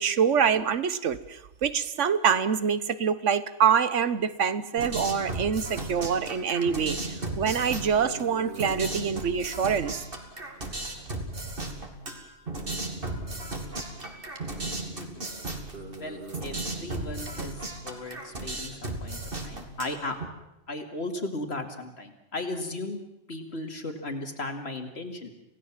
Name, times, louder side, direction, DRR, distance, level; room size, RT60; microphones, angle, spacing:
voice 1, 0.0-10.0, right 7 dB, 85° right, 14 dB, 1.4 m, -25 dB
sound 1, 4.8-20.2, right 2 dB, 50° right, 2.9 m, -35 dB
voice 2, 16.0-20.2 20.7-23.0 23.3-25.3, left 2 dB, 60° left, 5 dB, 2.7 m, -36 dB
27.5 x 17.0 x 7.4 m, 0.89 s
omnidirectional pair, 1.2 m